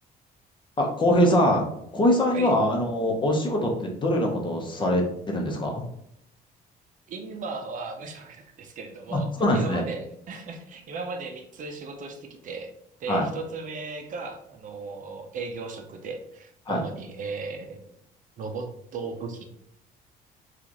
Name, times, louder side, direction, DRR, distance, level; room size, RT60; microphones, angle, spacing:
voice 1, 0.8-1.7 1.9-5.9 9.1-9.8 13.1-13.2 16.7-16.8, left 1 dB, 30° left, 1 dB, 0.8 m, -23 dB
voice 2, 7.1-12.7 13.0-17.8 18.4-19.4, right 4 dB, 50° right, 4 dB, 0.6 m, -36 dB
3.0 x 2.4 x 3.8 m, 0.72 s
cardioid pair, 110°, 17 cm